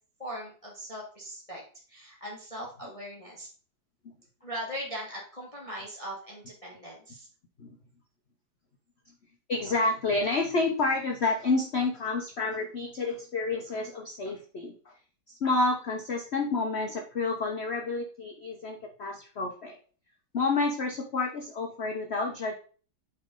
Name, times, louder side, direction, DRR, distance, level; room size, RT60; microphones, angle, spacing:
voice 1, 0.2-1.6 1.9-3.5 4.4-7.3, equal, 20° left, -3 dB, 1.6 m, -40 dB
voice 2, 9.5-14.9 15.3-19.8 20.3-22.5, left 3 dB, 50° left, 2 dB, 0.8 m, -29 dB
8.4 x 4.4 x 3.7 m, 0.41 s
omnidirectional pair, 2.2 m